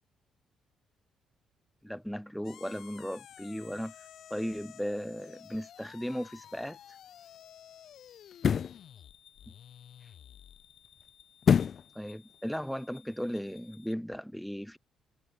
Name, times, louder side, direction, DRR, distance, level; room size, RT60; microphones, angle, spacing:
voice 1, 1.8-3.9 4.3-6.8 11.9-14.8, equal, ahead, 0.9 m, -36 dB
sound 1, 2.4-13.9, left 10 dB, 70° left, 2.4 m, -53 dB
sound 2, 6.4-6.6 8.3-8.8 11.4-11.9 12.3-12.4, left 7 dB, 50° left, 0.4 m, -25 dB
cardioid pair, 90°, 0 cm